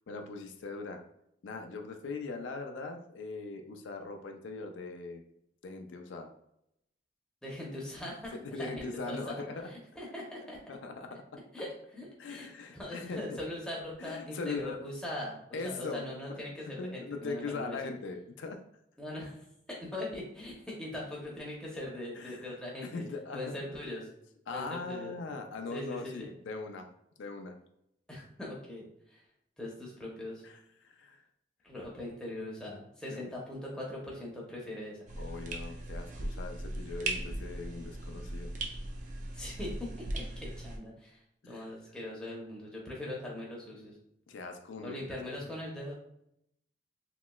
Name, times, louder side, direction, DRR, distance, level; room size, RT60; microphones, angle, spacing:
voice 1, 0.1-1.0 1.4-5.2 5.6-6.3 8.3-9.7 10.7-11.4 12.2-13.4 14.0-14.8 15.5-16.4 16.7-18.6 22.2-22.5 22.8-23.5 24.5-26.9 27.2-27.6 30.4-31.2 33.1-33.3 35.1-38.5 41.4-41.7 44.3-45.0, left 3 dB, 90° left, 5 dB, 0.4 m, -40 dB
voice 2, 7.4-10.6 11.5-17.9 19.0-19.4 19.7-23.0 23.3-24.1 24.5-25.1 25.7-26.3 28.1-29.2 29.6-30.5 31.6-35.1 39.3-44.0 44.8-45.9, left 1 dB, 5° left, -4 dB, 0.6 m, -41 dB
sound 1, 35.1-40.8, right 2 dB, 40° right, 0.4 m, -38 dB
3.0 x 2.9 x 2.2 m, 0.78 s
head